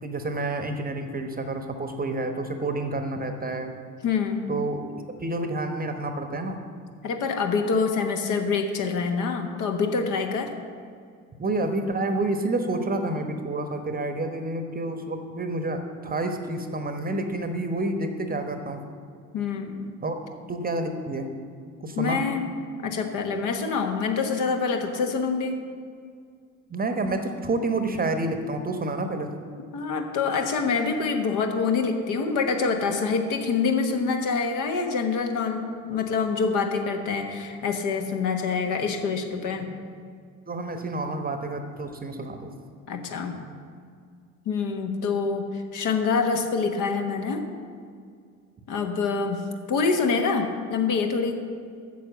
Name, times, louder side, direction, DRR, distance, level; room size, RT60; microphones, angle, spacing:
voice 1, 0.0-3.7 4.5-4.9 5.2-6.6 11.4-18.8 20.0-20.2 20.5-21.3 21.8-22.2 26.7-29.3 39.6-39.7 40.5-42.5, right 2 dB, 20° right, 6 dB, 1.1 m, -29 dB
voice 2, 4.0-4.5 7.0-10.5 19.3-20.0 22.0-22.5 22.8-25.5 29.7-39.7 42.9-43.4 44.4-47.4 48.7-49.4 49.7-51.4, left 5 dB, 50° left, 4 dB, 1.3 m, -26 dB
9.2 x 7.1 x 7.7 m, 2.2 s
figure-of-eight pair, 55°, 42 cm